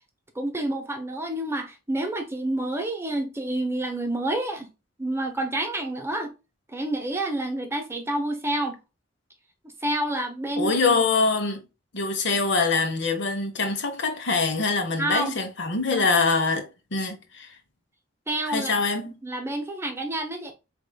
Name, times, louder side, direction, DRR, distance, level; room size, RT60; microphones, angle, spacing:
voice 1, 0.3-4.7 5.0-6.3 6.7-8.8 9.8-10.7 15.0-15.4 18.3-18.7 19.2-20.5, right 1 dB, 15° right, 0.9 m, -28 dB
voice 2, 10.6-11.6 11.9-17.6 18.5-19.1, left 4 dB, 65° left, 1.1 m, -24 dB
4.8 x 3.7 x 2.3 m
head